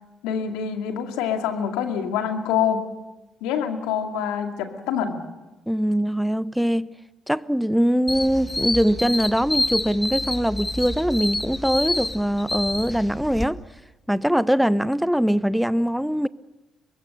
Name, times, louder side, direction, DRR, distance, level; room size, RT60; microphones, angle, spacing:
voice 1, 0.2-2.8 3.4-5.2, left 8 dB, 75° left, 2.2 m, -26 dB
voice 2, 5.7-6.9 7.3-13.6 14.1-16.3, equal, ahead, 0.7 m, -22 dB
sound 1, 8.1-13.4, left 1 dB, 15° left, 1.8 m, -28 dB
24.5 x 21.5 x 6.6 m
hypercardioid pair, 45°, 0 cm